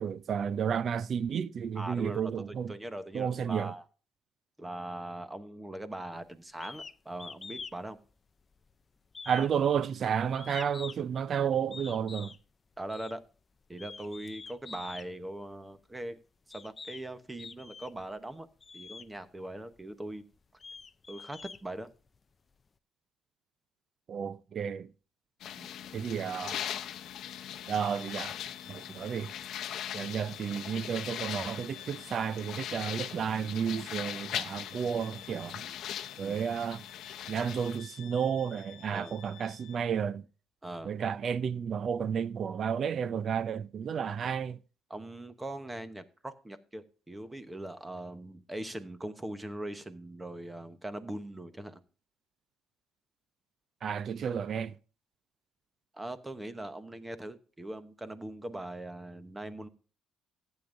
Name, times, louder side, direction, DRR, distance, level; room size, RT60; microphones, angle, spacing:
voice 1, 0.0-2.7 3.1-3.7 9.3-12.3 24.1-24.9 25.9-26.6 27.7-28.3 28.7-29.3 29.9-35.6 36.2-36.8 37.3-40.3 40.8-44.6 53.8-54.8, right 7 dB, 40° right, 0.5 m, -32 dB
voice 2, 1.7-3.8 4.6-8.0 12.8-13.2 13.7-16.2 16.5-18.5 18.7-20.2 21.1-21.9 25.6-25.7 35.6-35.7 36.2-36.4 38.9-39.2 40.6-40.9 44.0-44.3 44.9-51.8 55.9-59.7, right 1 dB, 10° right, 0.9 m, -41 dB
sound 1, 6.6-6.9 7.2-7.8 8.1-8.7 9.1-11.2 11.7-12.4 12.9-13.1 13.7-15.1 15.9-16.0 16.5-17.0 17.4-18.1 18.6-19.1 19.7-19.8 20.3-22.2, left 5 dB, 25° left, 0.4 m, -45 dB
sound 2, 25.4-37.8, left 10 dB, 55° left, 0.8 m, -40 dB
Bowed string instrument, 26.2-40.0, left 12 dB, 85° left, 1.2 m, -52 dB
15.0 x 8.9 x 2.6 m
cardioid pair, 160°, 0 cm